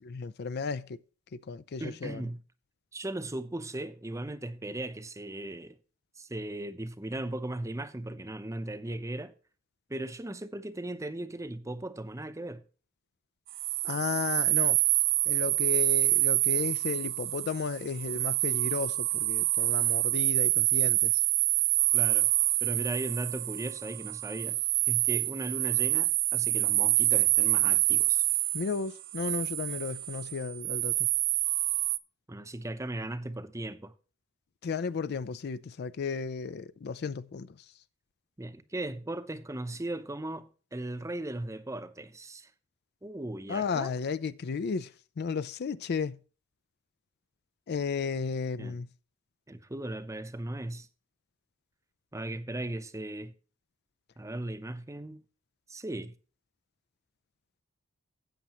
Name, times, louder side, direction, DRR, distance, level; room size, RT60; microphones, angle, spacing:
voice 1, 0.1-1.0 1.3-2.3 13.8-14.8 15.3-21.1 28.5-30.9 34.6-37.5 43.5-44.9 45.2-46.2 47.7-48.9, left 5 dB, 50° left, 0.4 m, -34 dB
voice 2, 1.8-2.4 2.9-5.8 6.2-9.3 9.9-12.6 21.9-22.3 22.6-24.6 24.9-28.3 32.3-33.9 38.4-42.5 43.0-43.9 48.6-48.8 49.5-50.9 52.1-53.3 54.2-55.2 55.7-56.1, right 1 dB, 15° right, 0.7 m, -37 dB
sound 1, 13.5-32.0, right 17 dB, 45° right, 0.4 m, -27 dB
13.0 x 8.3 x 3.0 m
head